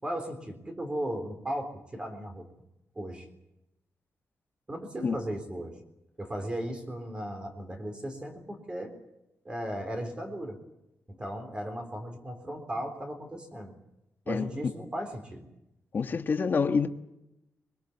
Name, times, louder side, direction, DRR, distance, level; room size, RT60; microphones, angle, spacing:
voice 1, 0.0-2.5 3.0-3.3 4.7-5.8 6.2-9.0 9.4-10.6 11.2-13.7 14.3-15.5, right 1 dB, 20° right, 3.7 m, -36 dB
voice 2, 15.9-16.9, left 5 dB, 40° left, 1.3 m, -27 dB
23.0 x 22.0 x 8.3 m
wide cardioid pair, 175°, 5 cm